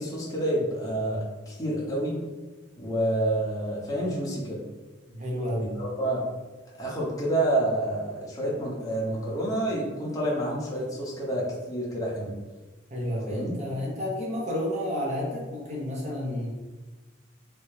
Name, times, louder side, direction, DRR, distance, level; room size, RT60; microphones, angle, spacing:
voice 1, 0.0-2.2 2.8-4.6 5.6-6.2 6.8-12.3 13.3-13.6, right 1 dB, 15° left, -5 dB, 0.7 m, -28 dB
voice 2, 5.1-5.7 12.9-16.5, left 1 dB, 35° right, -4 dB, 0.8 m, -31 dB
3.2 x 2.8 x 3.2 m, 1.2 s
head